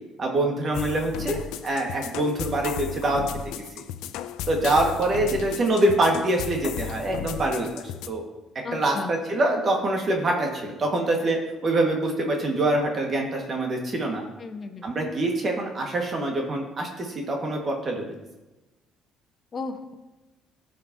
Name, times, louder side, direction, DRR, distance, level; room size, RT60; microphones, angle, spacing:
voice 1, 0.2-3.2 4.5-8.2 8.7-14.2 14.8-18.2, right 2 dB, 40° right, 1 dB, 1.6 m, -25 dB
sound 1, 0.7-8.1, left 10 dB, 85° left, 0.4 m, -35 dB
voice 2, 8.6-9.1 14.4-14.9 19.5-19.9, left 4 dB, 40° left, 4 dB, 1.2 m, -34 dB
15.0 x 5.3 x 2.8 m, 1.1 s
cardioid pair, 100°, 0 cm